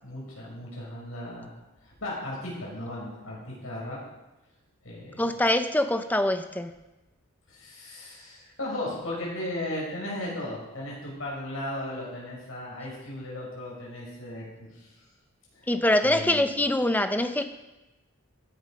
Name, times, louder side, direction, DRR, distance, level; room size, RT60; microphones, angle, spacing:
voice 1, 0.0-1.5 1.8-4.0 4.8-5.2 7.5-14.9 15.5-15.7 16.0-16.5, left 1 dB, 70° left, -4 dB, 6.4 m, -36 dB
voice 2, 5.2-6.7 15.7-17.4, left 1 dB, 10° left, 8 dB, 0.7 m, -24 dB
15.5 x 10.5 x 5.3 m, 1.0 s
head